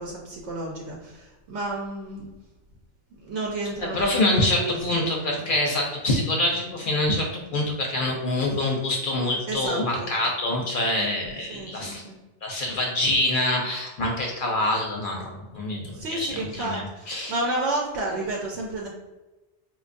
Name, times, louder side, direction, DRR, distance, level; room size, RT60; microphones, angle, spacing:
voice 1, 0.0-2.3 3.2-4.8 9.5-10.1 11.5-12.2 15.9-18.9, right 2 dB, 80° right, -2 dB, 0.9 m, -31 dB
voice 2, 3.8-12.0 12.4-17.4, left 1 dB, 60° left, 0 dB, 0.6 m, -26 dB
4.5 x 2.2 x 2.5 m, 1.1 s
omnidirectional pair, 1.2 m